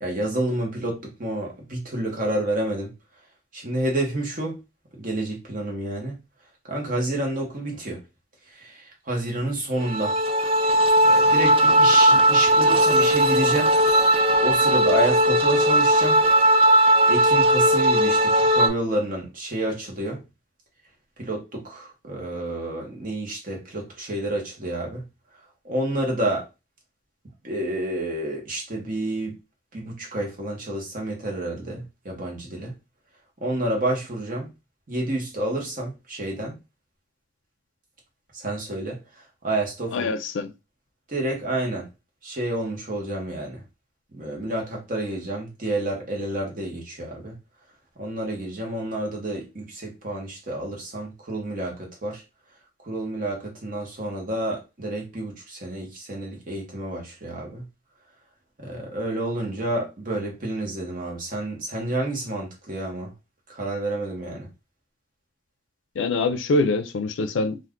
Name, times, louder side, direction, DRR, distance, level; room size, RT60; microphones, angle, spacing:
voice 1, 0.0-2.9 3.5-4.6 5.0-6.2 6.7-8.0 8.6-10.2 11.0-13.7 14.4-16.2 17.1-20.2 21.2-25.1 25.6-26.5 27.4-29.4 29.7-32.8 33.4-34.5 34.9-36.6 38.3-39.0 39.4-40.1 41.1-41.9 42.2-43.6 44.1-47.4 48.0-52.2 52.8-57.6 58.6-63.1 63.5-64.5, right 1 dB, 45° right, 1.1 m, -29 dB
sound 1, 9.8-18.7, right 1 dB, 30° right, 0.4 m, -18 dB
voice 2, 39.9-40.5 66.0-67.6, left 3 dB, 80° left, 0.4 m, -24 dB
2.5 x 2.4 x 3.5 m
head